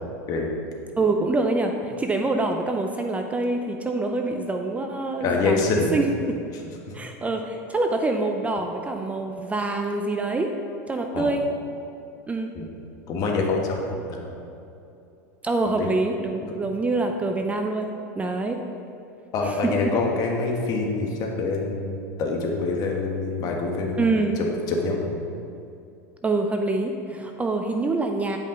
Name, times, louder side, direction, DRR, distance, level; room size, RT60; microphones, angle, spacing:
voice 1, 1.0-5.6 5.9-6.1 6.9-10.5 10.9-11.5 12.3-12.5 15.4-18.6 19.4-19.7 24.0-24.4 26.2-28.4, right 2 dB, 15° right, 4 dB, 0.5 m, -25 dB
voice 2, 5.2-6.0 6.7-6.8 11.1-11.3 12.5-12.7 13.1-14.3 15.7-15.9 19.3-25.2, left 3 dB, 45° left, 0 dB, 1.4 m, -26 dB
9.3 x 5.4 x 3.8 m, 2.7 s
supercardioid pair, 110°, 9 cm